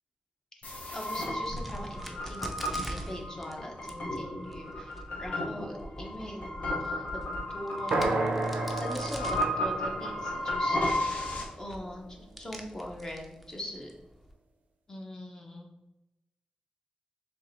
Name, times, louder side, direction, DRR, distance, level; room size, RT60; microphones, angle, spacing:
sound 1, 0.6-11.4, left 1 dB, 70° left, 0.8 m, -33 dB
voice 1, 0.9-8.2 8.8-13.9 14.9-15.7, left 1 dB, 25° left, 0 dB, 0.8 m, -42 dB
Crack, 1.1-14.3, equal, ahead, 0.5 m, -45 dB
sound 2, 7.9-11.8, right 2 dB, 85° right, 0.5 m, -33 dB
4.6 x 3.3 x 2.6 m, 0.95 s
wide cardioid pair, 100°, 3 cm